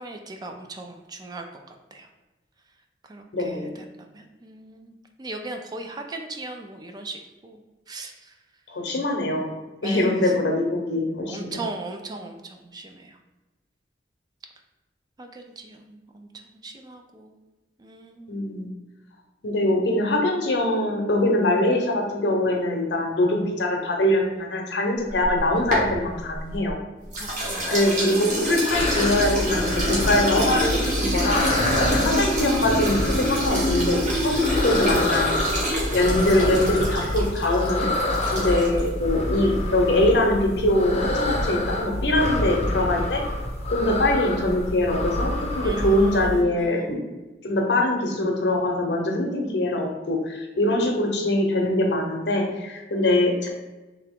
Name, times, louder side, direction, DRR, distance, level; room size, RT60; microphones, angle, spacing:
voice 1, 0.0-2.1 3.1-7.6 7.9-8.3 9.8-10.3 11.3-13.2 15.2-16.3 16.6-17.4 17.8-18.5 27.1-27.9 31.6-32.2 45.6-46.9, right 2 dB, 25° right, 4 dB, 0.3 m, -39 dB
voice 2, 3.3-3.7 8.7-9.5 9.8-11.6 18.3-18.7 19.4-26.8 27.7-35.4 35.9-37.9 38.3-43.2 43.7-47.0 47.4-53.5, left 1 dB, 75° left, 1 dB, 0.7 m, -23 dB
sound 1, 25.1-26.7 27.1-38.9, equal, 45° right, 1.2 m, -27 dB
sound 2, 28.7-46.4, left 1 dB, 40° left, 0.6 m, -27 dB
3.5 x 2.8 x 3.6 m, 1.1 s
head